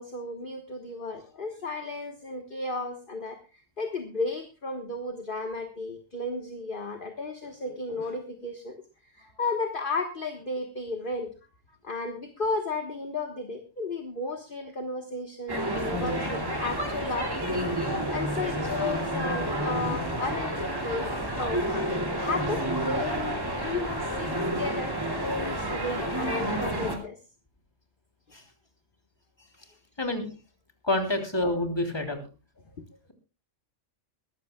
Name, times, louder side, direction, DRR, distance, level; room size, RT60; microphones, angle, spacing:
voice 1, 0.0-8.8 9.0-11.5 11.8-17.5 18.1-21.9 22.2-27.2 28.3-28.4 32.8-32.9, left 3 dB, 45° left, 5 dB, 1.6 m, -34 dB
sound 1, 15.5-27.0, right 1 dB, 20° right, 2.6 m, -30 dB
voice 2, 30.8-32.2, left 1 dB, 20° left, 4 dB, 3.3 m, -27 dB
21.5 x 15.0 x 2.3 m, 0.31 s
omnidirectional pair, 1.3 m